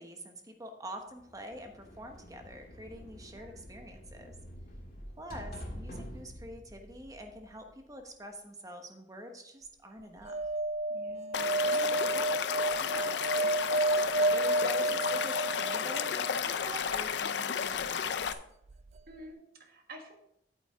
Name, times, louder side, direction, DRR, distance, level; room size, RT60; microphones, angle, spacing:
voice 1, 0.0-4.3 5.2-10.3 11.7-13.6 14.3-18.3, right 1 dB, 20° right, 4 dB, 1.2 m, -46 dB
sound 1, 1.2-7.9, equal, 50° left, 1.8 m, -47 dB
voice 2, 3.3-3.6 10.9-12.1 19.1-20.2, equal, 55° right, 3 dB, 1.6 m, -50 dB
sound 2, 10.2-16.4 18.7-18.8 19.0-19.1, right 2 dB, 40° right, 0.3 m, -30 dB
Stream / Liquid, 11.3-18.3, left 7 dB, 75° left, 0.5 m, -33 dB
8.8 x 8.0 x 3.7 m, 0.77 s
head